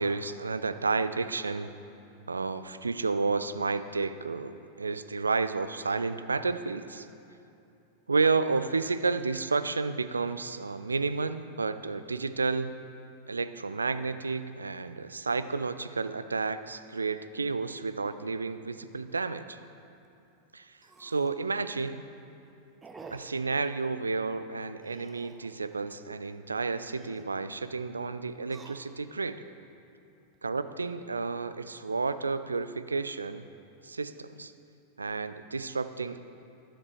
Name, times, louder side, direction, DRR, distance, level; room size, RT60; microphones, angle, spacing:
voice 1, 0.0-1.7 2.3-7.1 8.1-12.8 13.3-19.6 20.5-20.7 21.0-22.0 23.1-29.5 30.4-33.4 33.8-34.5 35.0-36.2, right 4 dB, 75° right, 12 dB, 0.4 m, -31 dB
sound 1, 19.1-19.2 19.7-19.8 20.0-20.1 20.7-21.5 21.9-22.2 22.8-23.4 24.8-25.6 26.7-27.3 28.3-29.2 29.8-30.4, right 4 dB, 15° right, 0.7 m, -51 dB
12.5 x 7.3 x 4.9 m, 2.7 s
figure-of-eight pair, 90°, 0 cm